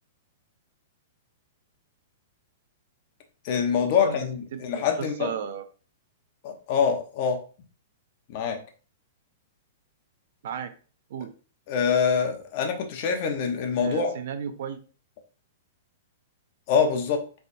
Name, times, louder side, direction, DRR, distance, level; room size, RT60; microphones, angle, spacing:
voice 1, 3.4-5.3 6.4-7.4 8.3-8.6 11.7-14.1 16.7-17.2, left 6 dB, 50° left, 5 dB, 0.9 m, -25 dB
voice 2, 4.0-5.6 10.4-10.7 11.1-11.3 13.8-14.8, right 7 dB, 65° right, 9 dB, 0.5 m, -34 dB
4.0 x 3.4 x 2.6 m, 0.38 s
hypercardioid pair, 120°, 0 cm